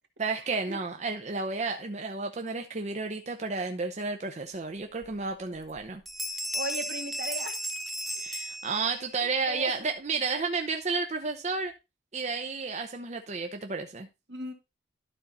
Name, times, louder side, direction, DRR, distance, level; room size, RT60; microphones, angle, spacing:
voice 1, 0.2-6.0 8.2-11.7 12.1-14.1, right 4 dB, 40° right, 0.7 m, -32 dB
sound 1, 5.0-5.1 5.6-5.8 6.1-9.2, equal, ahead, 0.7 m, -35 dB
voice 2, 6.5-7.6 9.5-9.9 14.3-14.5, right 1 dB, 75° right, 1.8 m, -36 dB
12.0 x 4.1 x 4.0 m
head